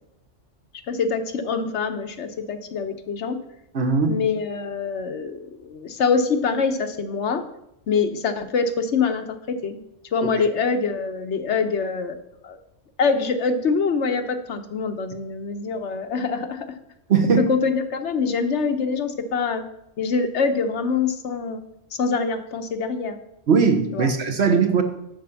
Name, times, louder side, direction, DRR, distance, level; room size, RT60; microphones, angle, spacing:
voice 1, 0.9-3.4 4.1-7.4 7.9-9.8 10.1-12.1 12.4-12.6 13.0-16.7 17.5-19.6 20.0-21.6 22.0-23.2 23.9-24.1, left 5 dB, 70° left, 7 dB, 1.2 m, -24 dB
voice 2, 3.7-4.2 17.1-17.5 23.5-24.8, right 5 dB, 60° right, 6 dB, 1.4 m, -19 dB
10.5 x 4.3 x 6.9 m, 0.81 s
omnidirectional pair, 1.3 m